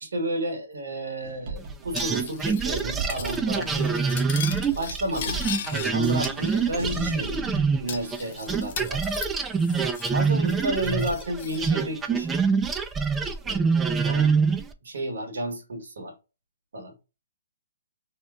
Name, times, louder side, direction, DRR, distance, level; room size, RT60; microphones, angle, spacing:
voice 1, 0.0-4.0 4.8-5.4 5.7-7.4 7.8-9.0 10.1-12.4 13.4-14.4 14.8-16.1 16.7-16.9, right 1 dB, 80° right, 1.2 m, -32 dB
sound 1, 1.2-2.6 3.0-8.1, right 2 dB, 45° right, 1.0 m, -38 dB
sound 2, 1.9-8.2 8.5-14.7, right 5 dB, 10° right, 0.3 m, -25 dB
Cutlery silverware, 2.0-2.8 3.1-3.4 3.6-5.9 6.2-6.9 7.2-7.3 7.9-10.2 10.5-11.6, left 8 dB, 50° left, 0.6 m, -37 dB
2.8 x 2.2 x 3.4 m
hypercardioid pair, 145°, 0 cm